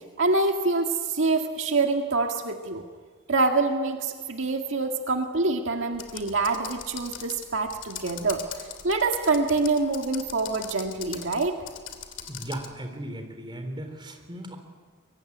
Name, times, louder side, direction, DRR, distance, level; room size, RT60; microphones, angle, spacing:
voice 1, 0.2-2.8 3.3-8.4 8.8-11.6, right 3 dB, 70° right, 3 dB, 1.9 m, -25 dB
Computer keyboard, 5.9-12.7, left 9 dB, 65° left, 3.0 m, -40 dB
voice 2, 12.2-14.6, right 1 dB, 25° right, 5 dB, 3.8 m, -37 dB
24.0 x 23.5 x 9.8 m, 1.6 s
head